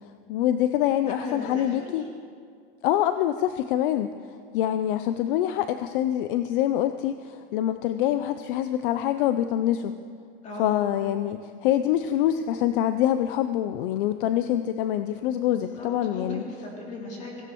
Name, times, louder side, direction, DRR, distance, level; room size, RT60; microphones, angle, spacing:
voice 1, 0.3-2.0 2.8-4.1 4.5-9.9 10.6-16.4, left 12 dB, 60° left, 10 dB, 0.5 m, -25 dB
voice 2, 1.1-1.9 10.4-10.8 15.5-17.5, left 1 dB, 25° left, -3 dB, 2.9 m, -37 dB
17.0 x 15.5 x 3.0 m, 2.2 s
supercardioid pair, 160°, 30 cm